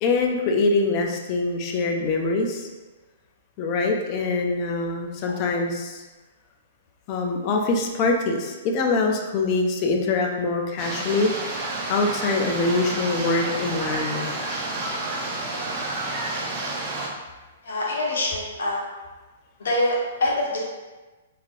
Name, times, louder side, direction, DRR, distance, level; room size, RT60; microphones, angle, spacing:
voice 1, 0.0-2.7 3.6-6.0 7.1-11.3 11.9-14.3, left 3 dB, 30° left, 2 dB, 0.3 m, -24 dB
sound 1, 10.8-17.1, right 2 dB, 30° right, 0.5 m, -30 dB
voice 2, 17.6-18.8 19.6-20.6, left 1 dB, 85° left, -4 dB, 1.0 m, -25 dB
3.1 x 2.7 x 2.5 m, 1.2 s
hypercardioid pair, 160°, 0 cm